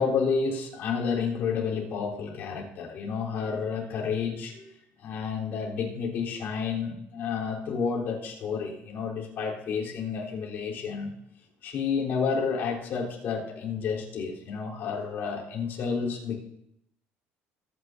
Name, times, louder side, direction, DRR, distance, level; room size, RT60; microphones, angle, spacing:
voice 1, 0.0-4.7 5.0-11.1 11.6-16.4, left 5 dB, 55° left, -3 dB, 3.7 m, -30 dB
24.0 x 9.5 x 2.7 m, 0.77 s
cardioid pair, 140°, 4 cm